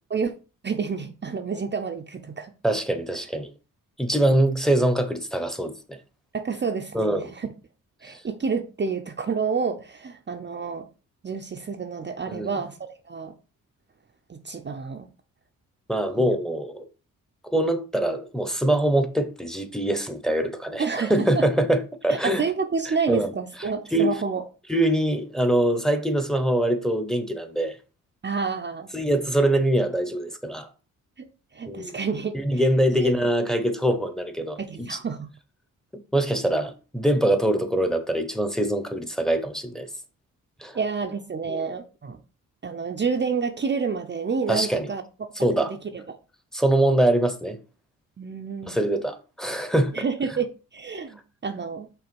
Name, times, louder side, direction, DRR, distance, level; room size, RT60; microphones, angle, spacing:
voice 1, 0.6-2.5 6.3-7.5 8.0-10.9 11.2-12.8 13.1-13.3 14.3-15.1 16.1-16.3 20.8-21.4 22.1-24.4 28.2-28.9 31.2-32.6 32.9-33.1 34.6-35.3 40.7-42.2 42.6-45.0 45.6-45.8 46.1-46.2 48.2-48.8 49.9-52.0, right 5 dB, 30° right, 0.7 m, -29 dB
voice 2, 2.6-3.5 4.0-6.0 6.9-7.3 8.1-8.2 12.3-12.5 15.9-16.9 17.4-22.4 22.9-23.3 23.9-24.1 24.7-27.8 28.9-30.7 31.7-31.9 32.3-35.0 36.1-39.9 40.6-40.8 41.5-41.6 44.5-44.9 45.4-45.7 46.5-47.6 48.7-50.0, right 1 dB, ahead, 1.0 m, -23 dB
5.7 x 3.5 x 5.3 m
cardioid pair, 90°, 34 cm